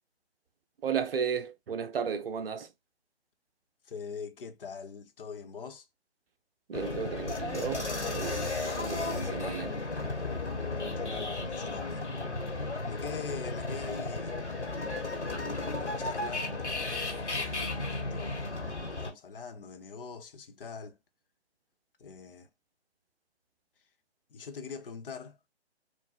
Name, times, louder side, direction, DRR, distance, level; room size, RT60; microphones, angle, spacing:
voice 1, 0.8-2.7 6.7-9.7, right 7 dB, 55° right, 0.7 m, -34 dB
voice 2, 3.8-5.9 11.0-12.1 12.9-14.4 15.2-16.5 17.3-18.4 19.0-21.0 22.0-22.5 24.3-25.4, left 5 dB, 55° left, 0.8 m, -43 dB
sound 1, 6.7-19.1, left 3 dB, 90° left, 1.6 m, -34 dB
3.8 x 2.5 x 2.3 m
figure-of-eight pair, 140°, 34 cm